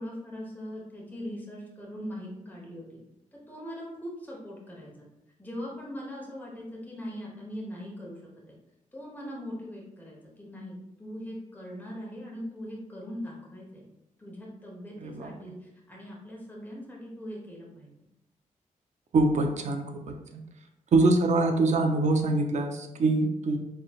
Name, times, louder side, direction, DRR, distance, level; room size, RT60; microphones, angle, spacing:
voice 1, 0.0-3.0 3.3-5.1 5.4-8.2 8.9-13.9 14.2-17.9, equal, 15° left, -3 dB, 1.2 m, -40 dB
voice 2, 15.0-15.5 19.1-20.0 20.3-20.4 20.9-23.6, right 2 dB, 60° right, 5 dB, 0.6 m, -24 dB
4.3 x 3.1 x 2.4 m, 0.88 s
cardioid pair, 85°, 14 cm